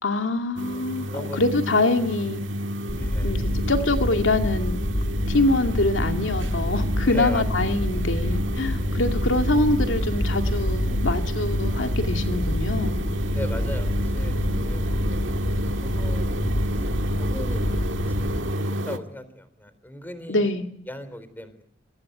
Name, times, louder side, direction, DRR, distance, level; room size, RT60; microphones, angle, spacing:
voice 1, 0.0-2.4 3.2-4.8 5.3-13.0 20.3-20.7, left 2 dB, 90° left, 2.2 m, -24 dB
sound 1, 0.6-19.0, equal, 80° right, 1.7 m, -30 dB
voice 2, 0.7-1.4 2.9-3.3 7.0-7.7 8.8-9.0 13.3-15.3 15.8-16.4 17.0-20.5 20.9-21.6, left 1 dB, 10° left, 3.9 m, -38 dB
sound 2, 2.9-18.5, equal, 40° left, 1.7 m, -27 dB
26.5 x 22.5 x 9.6 m
head